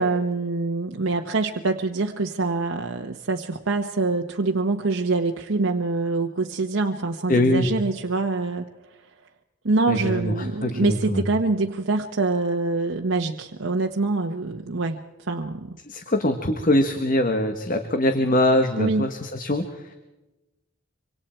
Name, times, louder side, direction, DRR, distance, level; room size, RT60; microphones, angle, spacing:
voice 1, 0.0-8.7 9.6-15.0 15.3-15.7 18.8-19.1, right 3 dB, 85° right, 2 dB, 1.1 m, -25 dB
voice 2, 7.3-7.7 9.9-11.3 15.9-19.9, left 1 dB, 45° left, 6 dB, 1.4 m, -23 dB
25.5 x 25.0 x 4.5 m, 1.0 s
head